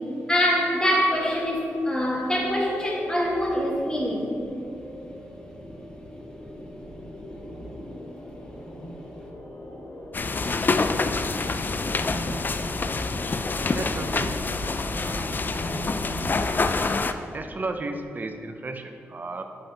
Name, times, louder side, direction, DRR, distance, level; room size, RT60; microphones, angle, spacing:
voice 1, 0.3-4.4, equal, 15° left, -2 dB, 1.5 m, -24 dB
sound 1, 1.1-16.8, equal, 75° left, 1.3 m, -40 dB
sound 2, 10.1-17.1, left 3 dB, 40° left, 0.3 m, -26 dB
voice 2, 13.7-14.6 14.8-15.3 17.3-19.4, right 2 dB, 35° right, 6 dB, 0.5 m, -34 dB
8.1 x 5.1 x 2.8 m, 2.7 s
cardioid pair, 55°, 5 cm